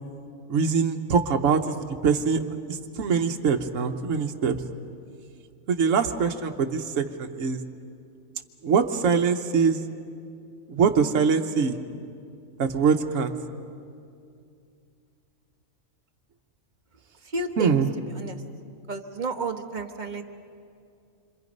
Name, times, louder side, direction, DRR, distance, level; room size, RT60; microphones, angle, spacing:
voice 1, 0.5-1.8 2.0-2.4 2.7-4.6 5.7-7.6 8.6-9.8 10.7-11.8 12.6-13.3 17.6-17.9, right 5 dB, 70° right, 4 dB, 1.3 m, -23 dB
voice 2, 17.3-17.8 18.1-18.4 18.9-20.2, right 3 dB, 35° right, 5 dB, 1.3 m, -31 dB
27.0 x 26.0 x 5.4 m, 2.4 s
omnidirectional pair, 1.4 m